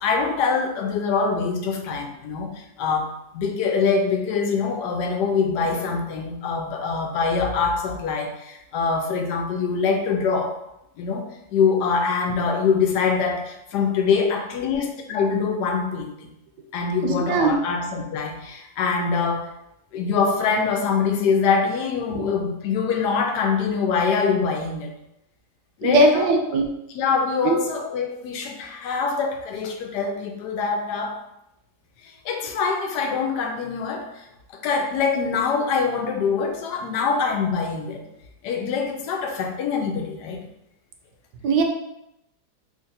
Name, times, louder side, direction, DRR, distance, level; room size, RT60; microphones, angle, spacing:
voice 1, 0.0-3.1 3.3-10.5 11.0-16.3 16.7-19.5 19.9-24.9 25.8-26.3 26.9-31.2 32.0-34.3 34.6-38.0 38.4-40.4, left 5 dB, 85° left, 3 dB, 1.2 m, -24 dB
voice 2, 17.0-17.6 22.1-22.2 25.8-26.7 27.4-27.6 41.4-41.6, right 2 dB, 75° right, 3 dB, 1.1 m, -19 dB
3.4 x 2.5 x 3.9 m, 0.84 s
omnidirectional pair, 1.7 m